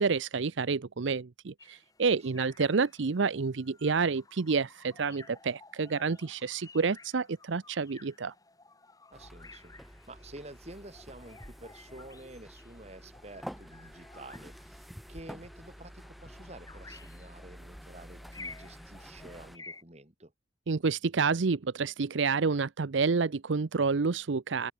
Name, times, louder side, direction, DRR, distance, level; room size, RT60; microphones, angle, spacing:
voice 1, 0.0-8.3 20.7-24.7, right 4 dB, 70° right, 0.6 m, -29 dB
sound 1, 1.6-19.8, left 3 dB, 20° left, 1.8 m, -54 dB
sound 2, 9.1-19.6, equal, ahead, 0.9 m, -49 dB
voice 2, 9.1-9.7 10.1-20.3, right 1 dB, 35° right, 2.9 m, -50 dB
open air
head